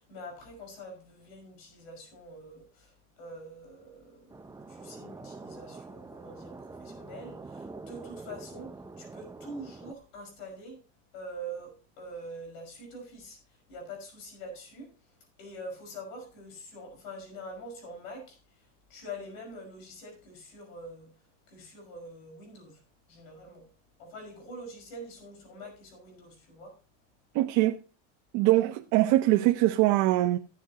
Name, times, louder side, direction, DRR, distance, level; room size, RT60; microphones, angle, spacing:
voice 1, 0.0-10.8 11.1-22.8 23.1-23.7 24.0-26.8, equal, 85° left, 5.5 m, -45 dB
sound 1, 4.3-9.9, right 3 dB, 10° right, 0.6 m, -45 dB
voice 2, 27.3-27.8 28.3-30.4, right 16 dB, 75° right, 0.9 m, -23 dB
15.5 x 7.2 x 2.9 m
supercardioid pair, 115°, 37 cm